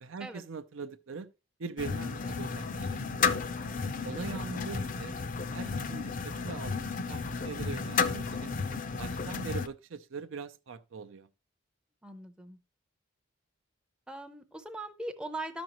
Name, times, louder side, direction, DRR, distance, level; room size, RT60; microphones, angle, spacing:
voice 1, 0.0-1.3 1.6-3.3 4.0-5.2 5.5-8.5 9.0-11.3, right 5 dB, 70° right, 0.6 m, -42 dB
sound 1, 1.8-9.7, left 5 dB, 40° left, 0.5 m, -33 dB
voice 2, 12.0-12.6 14.1-15.6, right 2 dB, 5° right, 0.6 m, -40 dB
13.5 x 5.2 x 2.9 m
head